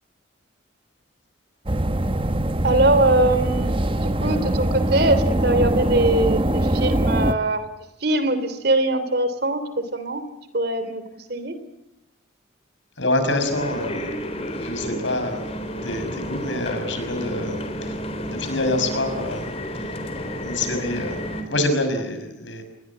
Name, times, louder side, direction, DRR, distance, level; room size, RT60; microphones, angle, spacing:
sound 1, 1.7-7.3, right 1 dB, 25° right, 1.1 m, -22 dB
voice 1, 2.6-3.8 4.0-7.7 8.0-10.2 10.5-11.0 11.3-11.6, right 2 dB, 55° right, 12 dB, 3.1 m, -22 dB
voice 2, 13.0-14.1 14.6-15.4 15.8-18.0 18.3-19.5 19.8-19.9 20.4-21.2 21.5-22.6, left 1 dB, 70° left, 8 dB, 6.2 m, -26 dB
sound 2, 13.4-21.4, equal, 30° left, 4.0 m, -31 dB
28.5 x 21.5 x 7.4 m, 0.89 s
head